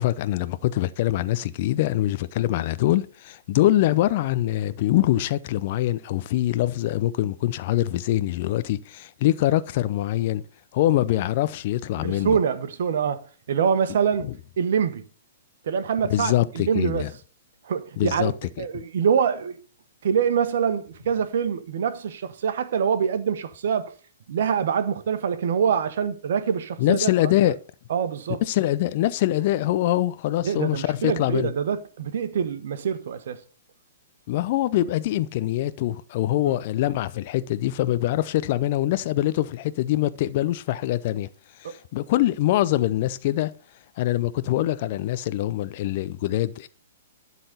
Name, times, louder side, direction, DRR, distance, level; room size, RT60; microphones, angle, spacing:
voice 1, 0.0-10.4 10.7-12.4 14.2-14.3 16.1-17.1 18.0-18.3 18.7-18.8 26.8-27.6 28.4-31.5 34.3-41.3 41.6-43.5 44.0-46.7, left 14 dB, 50° left, 0.6 m, -24 dB
voice 2, 12.0-14.3 14.6-15.1 15.6-17.1 17.6-19.6 20.0-23.9 24.3-27.5 27.9-28.4 30.4-33.4 36.5-36.6 41.6-41.8, right 7 dB, 60° right, 1.3 m, -25 dB
11.5 x 4.1 x 6.6 m
hypercardioid pair, 120°, 0 cm